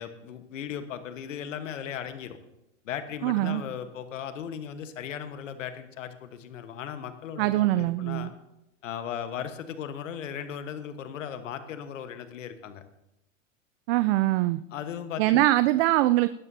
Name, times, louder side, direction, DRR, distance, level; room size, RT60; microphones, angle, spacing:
voice 1, 0.0-2.4 2.8-8.3 8.8-12.8 14.7-15.5, left 8 dB, 80° left, 9 dB, 1.4 m, -37 dB
voice 2, 3.2-3.6 7.4-8.3 13.9-14.6 15.2-16.3, right 16 dB, 50° right, 13 dB, 0.6 m, -23 dB
19.0 x 12.0 x 2.8 m, 0.88 s
hypercardioid pair, 110°, 38 cm